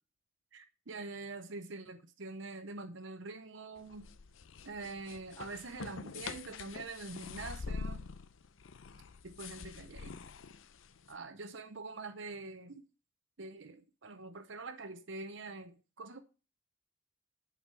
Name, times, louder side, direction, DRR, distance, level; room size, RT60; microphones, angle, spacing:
voice 1, 0.5-4.1 4.6-8.1 9.2-10.2 11.1-12.8 13.4-16.2, right 3 dB, 65° right, 0.8 m, -45 dB
sound 1, 3.8-11.1, left 4 dB, 70° left, 0.6 m, -45 dB
11.0 x 4.9 x 6.8 m
head